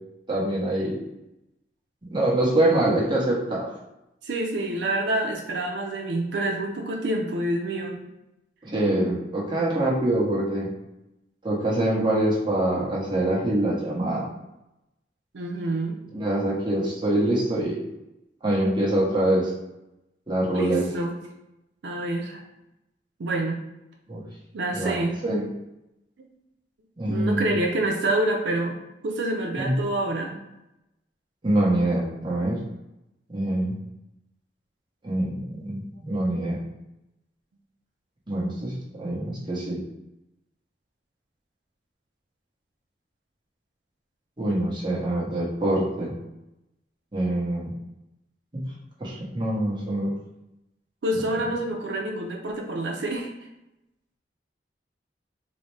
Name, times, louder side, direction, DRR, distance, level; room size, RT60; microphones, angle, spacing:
voice 1, 0.3-1.0 2.1-3.7 8.6-10.7 11.4-14.3 16.1-17.8 18.4-19.5 20.3-20.8 24.1-24.2 24.7-24.9 25.2-25.4 27.0-27.5 29.6-29.7 31.4-32.6 33.3-33.7 35.0-36.6 38.3-39.8 44.4-46.1 47.1-47.7 48.5-48.6 49.0-50.1, right 1 dB, 25° right, -5 dB, 0.9 m, -24 dB
voice 2, 4.2-8.0 15.3-16.0 20.5-21.2 21.8-22.4 23.2-23.6 24.5-25.2 26.2-26.3 27.1-28.8 29.0-30.4 36.0-36.1 51.0-53.3, right 1 dB, 80° right, 1 dB, 0.5 m, -27 dB
4.0 x 2.1 x 3.1 m, 0.91 s
head